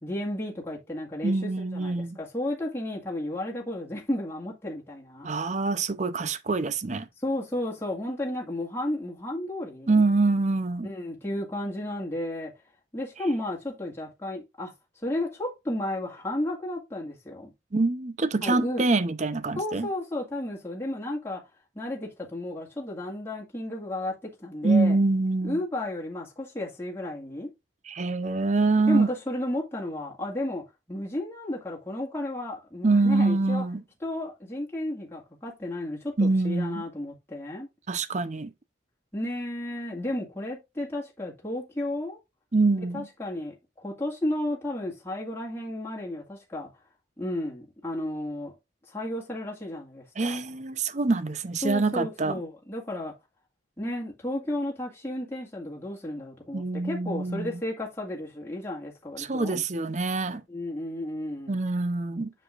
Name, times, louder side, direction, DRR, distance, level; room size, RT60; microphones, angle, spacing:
voice 1, 0.0-5.3 7.2-10.0 10.8-12.5 12.9-14.7 15.0-17.5 18.4-18.9 19.6-21.4 21.8-25.0 25.4-27.5 28.9-30.6 30.9-33.6 34.0-37.7 39.1-42.2 42.9-46.7 47.2-48.5 48.9-50.4 51.6-53.1 53.8-59.6 60.5-61.6, left 1 dB, 10° left, 1.9 m, -33 dB
voice 2, 1.2-2.2 5.2-7.1 9.9-10.9 17.7-19.9 24.6-25.6 27.9-29.1 32.8-33.8 36.2-36.8 37.9-38.5 42.5-43.1 50.2-52.4 56.5-57.5 59.2-60.4 61.5-62.3, right 3 dB, 35° right, 0.6 m, -25 dB
7.5 x 6.7 x 2.4 m
head